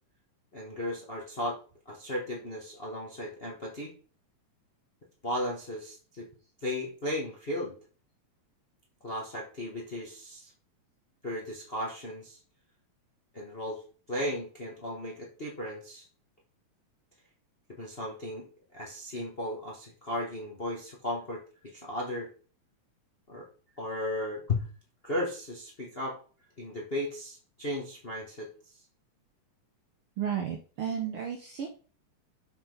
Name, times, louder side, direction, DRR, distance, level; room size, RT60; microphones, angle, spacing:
voice 1, 0.5-1.6 1.8-3.9 5.2-6.3 6.6-7.7 9.0-10.5 11.2-12.4 13.3-13.8 14.1-16.0 17.7-22.3 23.3-23.5 23.8-24.7 25.0-26.2 26.6-28.5, left 1 dB, 35° left, -2 dB, 0.9 m, -35 dB
voice 2, 30.2-31.7, right 8 dB, 70° right, 3 dB, 1.4 m, -33 dB
7.2 x 4.0 x 5.3 m, 0.39 s
omnidirectional pair, 3.4 m